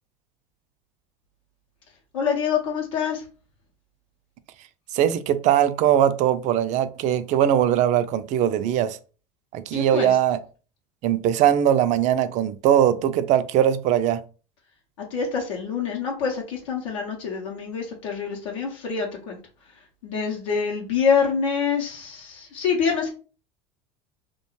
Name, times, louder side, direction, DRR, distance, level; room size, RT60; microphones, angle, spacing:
voice 1, 2.1-3.2 9.7-10.2 15.1-19.4 20.0-23.1, left 6 dB, 90° left, 0.6 m, -26 dB
voice 2, 4.9-9.0 9.5-10.4 11.0-14.2, right 10 dB, 50° right, 0.4 m, -20 dB
2.3 x 2.2 x 3.0 m
supercardioid pair, 95°, 16 cm